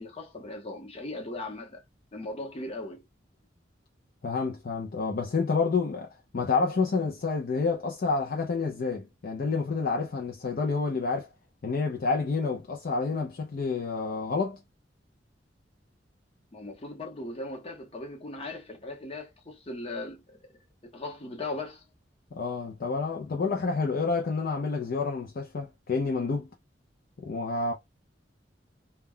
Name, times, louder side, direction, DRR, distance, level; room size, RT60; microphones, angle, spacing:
voice 1, 0.0-1.8 2.1-3.0 16.5-20.4 20.8-21.8, left 2 dB, 35° left, 0.8 m, -38 dB
voice 2, 4.2-6.1 6.3-11.3 11.6-14.6 22.3-26.5 27.2-27.7, left 4 dB, 55° left, 0.4 m, -29 dB
2.2 x 2.2 x 3.5 m
head